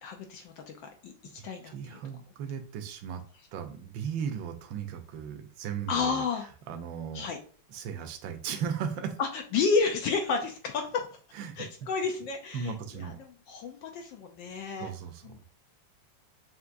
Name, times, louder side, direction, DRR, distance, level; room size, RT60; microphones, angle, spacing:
voice 1, 0.0-2.0 5.9-6.5 7.1-7.4 9.2-11.1 11.6-12.7 13.0-14.9 15.2-15.4, left 5 dB, 75° left, 4 dB, 1.3 m, -31 dB
voice 2, 1.7-3.2 3.5-6.2 6.7-7.3 7.7-9.2 11.3-11.7 12.5-13.2 14.8-15.4, right 7 dB, 75° right, 7 dB, 1.3 m, -36 dB
5.8 x 2.9 x 2.5 m, 0.42 s
omnidirectional pair, 2.2 m